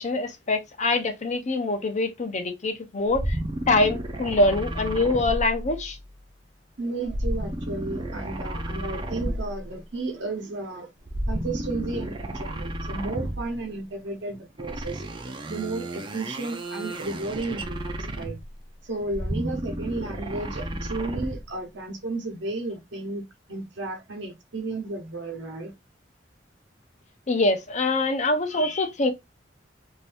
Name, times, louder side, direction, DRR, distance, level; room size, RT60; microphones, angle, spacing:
voice 1, 0.0-3.4 3.7-6.0 27.3-29.1, left 2 dB, 40° left, 0.6 m, -24 dB
sound 1, 3.1-6.1 7.0-9.7 11.0-13.6 14.6-18.6 19.0-21.5, right 1 dB, 25° right, 0.5 m, -32 dB
voice 2, 6.8-10.9 11.3-15.0 15.5-18.4 18.8-25.7, right 2 dB, 75° right, 1.0 m, -33 dB
2.7 x 2.6 x 3.4 m
head